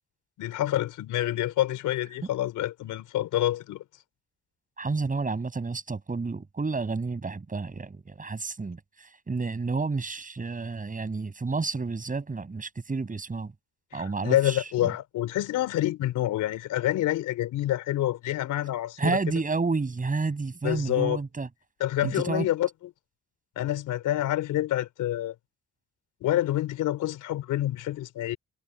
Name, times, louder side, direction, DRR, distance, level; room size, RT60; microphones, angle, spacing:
voice 1, 0.4-3.8 13.9-19.3 20.6-21.2 21.8-22.7 23.6-25.3 26.2-28.4, left 13 dB, 85° left, 3.9 m, -27 dB
voice 2, 4.8-13.5 13.9-14.9 19.0-21.5 22.0-22.5, right 4 dB, 25° right, 7.5 m, -30 dB
cardioid pair, 90°, 30 cm